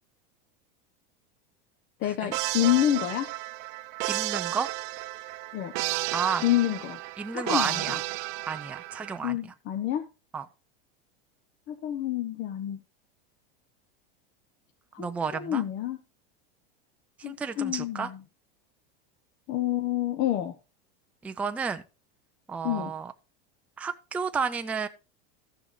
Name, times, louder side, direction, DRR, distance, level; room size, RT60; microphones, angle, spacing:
voice 1, 2.0-3.3 5.5-5.7 6.4-7.0 7.3-8.0 9.2-10.1 11.7-12.8 14.9-16.0 17.2-18.2 19.5-20.5 22.6-22.9, left 12 dB, 40° left, 0.8 m, -28 dB
sound 1, 2.3-9.2, right 19 dB, 60° right, 0.5 m, -33 dB
voice 2, 4.1-4.7 6.1-6.4 7.2-8.0 8.5-9.4 10.3-10.4 15.0-15.6 17.2-18.1 21.2-21.8 22.5-23.1 23.8-24.9, right 5 dB, 5° right, 0.4 m, -31 dB
14.5 x 6.1 x 3.1 m
supercardioid pair, 135°, 29 cm